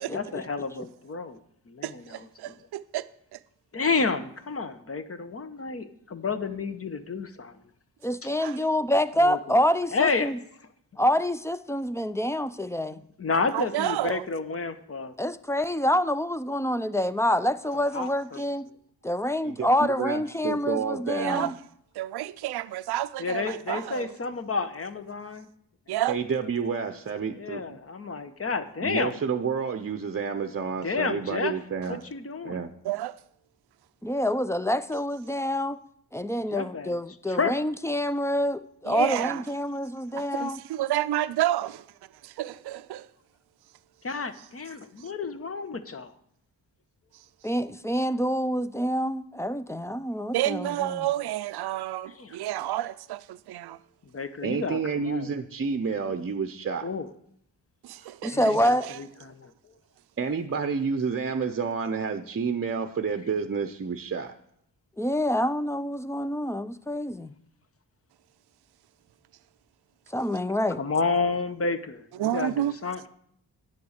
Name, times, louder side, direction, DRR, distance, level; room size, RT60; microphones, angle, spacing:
voice 1, 0.1-1.4 1.7-2.6 3.7-7.6 9.2-9.6 9.9-10.3 12.9-15.1 17.7-18.4 23.2-25.5 27.3-29.1 30.8-31.5 31.9-32.6 36.5-37.0 37.3-37.5 44.0-46.1 52.0-52.4 54.1-55.3 56.8-57.1 58.3-59.5 70.8-73.0, left 4 dB, 35° left, 1.0 m, -30 dB
voice 2, 1.8-3.4 8.4-8.6 13.5-14.2 21.2-21.5 21.9-24.2 25.9-26.2 32.8-33.2 38.8-39.4 40.2-41.7 42.4-43.1 50.3-53.8 57.8-59.0 72.2-72.7, right 13 dB, 80° right, 0.5 m, -30 dB
voice 3, 8.0-10.4 11.0-13.0 15.2-18.7 19.0-21.5 34.0-35.8 36.1-40.6 47.4-51.0 58.2-58.9 65.0-67.3 70.1-70.8, equal, 5° left, 0.4 m, -27 dB
voice 4, 19.4-21.5 26.1-27.8 28.8-32.0 32.4-32.7 54.4-56.9 58.0-58.1 60.2-64.4, right 5 dB, 35° right, 0.7 m, -30 dB
9.8 x 6.8 x 6.5 m
cardioid pair, 70°, 38 cm